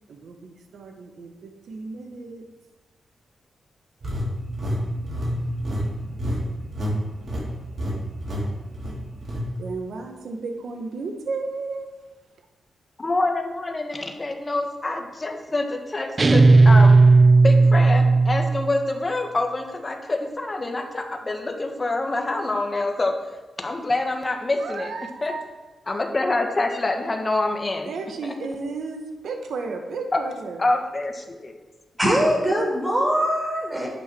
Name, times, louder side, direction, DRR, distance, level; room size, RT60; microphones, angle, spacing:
voice 1, 0.1-2.5 9.6-11.9 24.6-25.4 27.8-30.6, right 4 dB, 75° right, 4 dB, 1.5 m, -33 dB
sound 1, 4.0-6.9 7.2-7.5 7.8-7.9 8.2-8.4 8.7-9.4, equal, 50° right, 4.5 m, -28 dB
voice 2, 13.0-17.0 17.4-23.1 23.6-24.9 25.2-25.3 25.9-27.9 28.2-28.3 30.1-30.2 30.6-31.6, left 2 dB, 25° left, 4 dB, 1.6 m, -26 dB
sound 2, 16.2-18.7, right 3 dB, 35° right, 0.5 m, -14 dB
voice 3, 32.0-33.9, equal, 15° right, -2 dB, 4.5 m, -22 dB
11.5 x 9.1 x 4.6 m, 1.2 s
cardioid pair, 95°, 0 cm